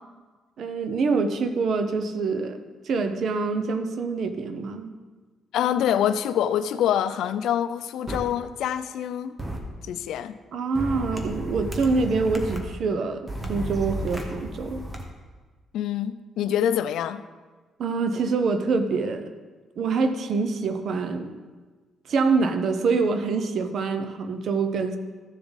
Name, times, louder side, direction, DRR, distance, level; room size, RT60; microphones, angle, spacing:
voice 1, 0.6-2.6 2.8-4.9 10.5-14.8 17.8-19.3 19.8-21.3 22.1-25.0, right 4 dB, 60° right, 8 dB, 0.9 m, -25 dB
voice 2, 5.5-9.4 9.8-10.4 15.7-17.2, left 10 dB, 80° left, 13 dB, 0.4 m, -25 dB
sound 1, 8.1-8.2 9.4-9.6 10.7-12.6 13.3-15.0, right 1 dB, 15° right, 1.3 m, -32 dB
14.0 x 7.1 x 4.0 m, 1.4 s
cardioid pair, 120°, 0 cm